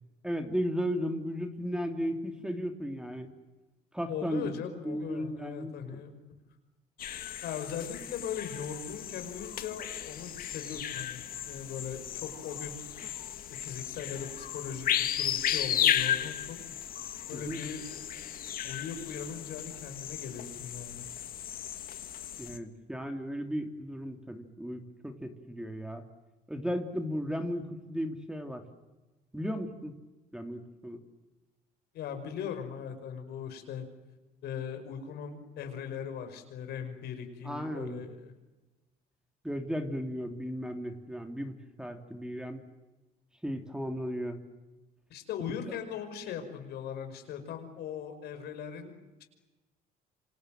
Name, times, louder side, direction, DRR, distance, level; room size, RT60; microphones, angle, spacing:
voice 1, 0.2-3.3 3.9-4.5 4.8-6.0 17.3-17.6 22.4-26.0 26.5-28.6 29.3-29.9 30.3-31.0 37.4-38.0 39.4-42.6 43.4-44.4, equal, 5° right, 6 dB, 3.0 m, -35 dB
voice 2, 4.1-6.2 7.4-12.8 13.5-16.6 17.3-17.8 18.6-21.0 31.9-33.9 34.4-38.3 45.1-49.2, left 7 dB, 75° left, 7 dB, 5.5 m, -39 dB
sound 1, 7.0-22.6, left 10 dB, 60° left, 1.9 m, -35 dB
27.5 x 26.0 x 7.7 m, 1.1 s
cardioid pair, 110°, 17 cm